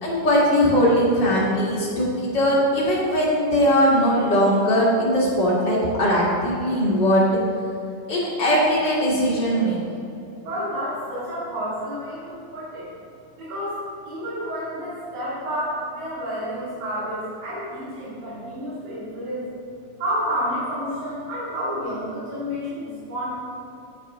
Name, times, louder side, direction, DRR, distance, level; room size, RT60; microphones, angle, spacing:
voice 1, 0.0-7.4 8.1-9.8, equal, 40° left, -6 dB, 2.0 m, -20 dB
voice 2, 10.4-12.9 13.4-13.8 14.1-19.5 20.0-23.4, equal, 80° right, -10 dB, 4.0 m, -30 dB
10.0 x 8.8 x 3.0 m, 2.8 s
omnidirectional pair, 3.9 m